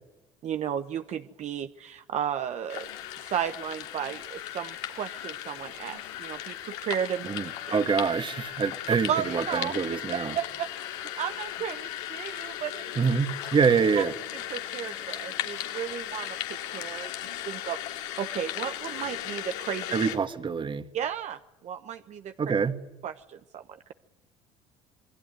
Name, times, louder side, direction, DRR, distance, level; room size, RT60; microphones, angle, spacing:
voice 1, 0.4-2.9 3.2-7.3 7.7-7.8 9.1-9.7 10.3-13.0 14.5-19.9 20.9-22.3 23.0-23.9, right 9 dB, 50° right, 8 dB, 1.1 m, -34 dB
sound 1, 2.7-20.2, left 12 dB, 80° left, 3.1 m, -37 dB
voice 2, 7.2-10.4 13.0-14.1 19.9-20.9 22.4-22.8, right 5 dB, 35° right, 10 dB, 2.0 m, -26 dB
28.0 x 21.5 x 9.7 m, 0.99 s
supercardioid pair, 75°, 14 cm